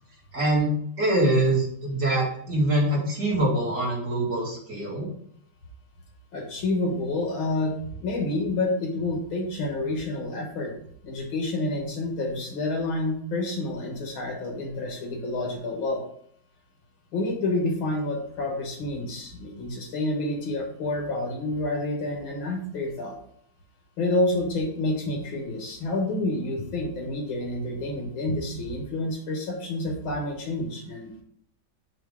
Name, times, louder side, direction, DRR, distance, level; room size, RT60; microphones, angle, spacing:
voice 1, 0.3-0.7 1.0-5.1, right 1 dB, 40° right, -6 dB, 2.4 m, -24 dB
voice 2, 6.3-7.7 8.0-10.7 11.0-16.0 17.1-23.2 24.0-31.2, left 2 dB, 80° left, 1 dB, 2.1 m, -28 dB
7.1 x 2.9 x 4.8 m, 0.64 s
omnidirectional pair, 2.1 m